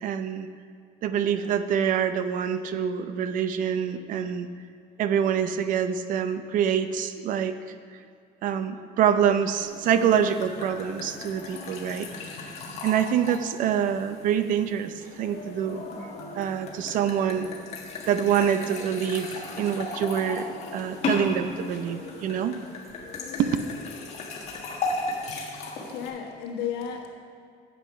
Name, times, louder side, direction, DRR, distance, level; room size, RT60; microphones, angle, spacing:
voice 1, 0.0-0.5 1.0-4.5 5.0-7.6 8.4-12.1 12.8-15.8 16.2-17.5 18.1-22.6 23.4-23.6, right 8 dB, 55° right, 10 dB, 0.6 m, -26 dB
sound 1, 9.6-26.1, left 3 dB, 40° left, 1.5 m, -36 dB
voice 2, 25.7-27.1, left 8 dB, 85° left, 2 dB, 1.4 m, -33 dB
10.5 x 8.0 x 5.0 m, 2.3 s
cardioid pair, 165°, 17 cm